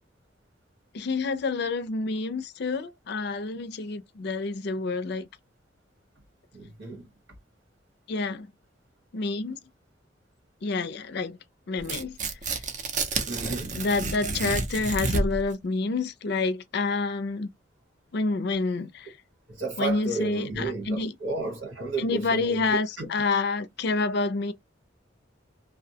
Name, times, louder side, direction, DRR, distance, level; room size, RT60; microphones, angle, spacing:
voice 1, 0.9-5.3 8.1-8.5 9.1-9.6 10.6-11.4 11.7-12.2 12.4-12.5 13.7-17.5 18.1-19.1 19.8-21.1 22.0-24.5, left 3 dB, 60° left, 0.4 m, -28 dB
voice 2, 6.5-7.1 13.3-13.8 19.5-23.1, right 3 dB, 80° right, 1.2 m, -33 dB
Tearing, 11.8-15.5, right 3 dB, 40° right, 0.5 m, -30 dB
2.6 x 2.0 x 2.7 m
head